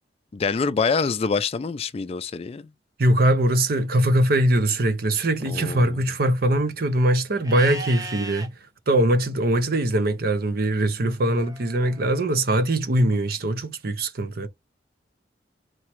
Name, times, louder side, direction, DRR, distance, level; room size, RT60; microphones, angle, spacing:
voice 1, 0.3-2.7 5.5-6.0, left 5 dB, 35° left, 0.3 m, -26 dB
voice 2, 3.0-8.5 8.9-14.5, right 1 dB, 60° right, 0.6 m, -22 dB
Livestock farm animals working animals, 7.4-8.5 11.3-12.3, right 2 dB, 20° right, 0.7 m, -37 dB
4.6 x 3.0 x 3.0 m
head